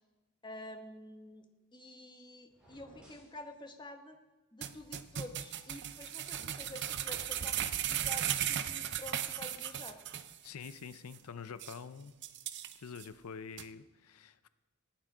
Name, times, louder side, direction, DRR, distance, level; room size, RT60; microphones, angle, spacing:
voice 1, 0.4-1.4 1.7-4.2 4.5-10.0, left 1 dB, 20° left, 5 dB, 1.2 m, -49 dB
sound 1, 2.5-3.4, equal, 5° right, 5.3 m, -59 dB
sound 2, 4.6-10.3 10.6-10.7 11.1-11.2 11.6-11.8 12.2-13.0 13.6-13.7, right 10 dB, 55° right, 0.6 m, -36 dB
voice 2, 10.4-12.1 12.8-14.5, left 6 dB, 85° left, 13 dB, 0.6 m, -46 dB
15.5 x 10.5 x 4.9 m, 1.1 s
head